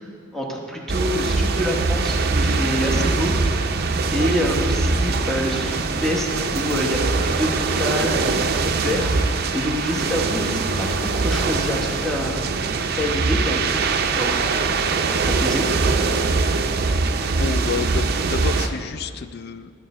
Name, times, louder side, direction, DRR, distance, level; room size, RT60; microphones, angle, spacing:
voice 1, 0.3-3.7 4.1-12.4 12.9-14.8 15.2-15.7, left 1 dB, ahead, -1 dB, 1.0 m, -27 dB
sound 1, 0.9-18.7, right 4 dB, 55° right, 0.5 m, -22 dB
voice 2, 17.4-19.7, left 6 dB, 55° left, 13 dB, 0.3 m, -30 dB
11.5 x 7.0 x 4.3 m, 2.2 s
head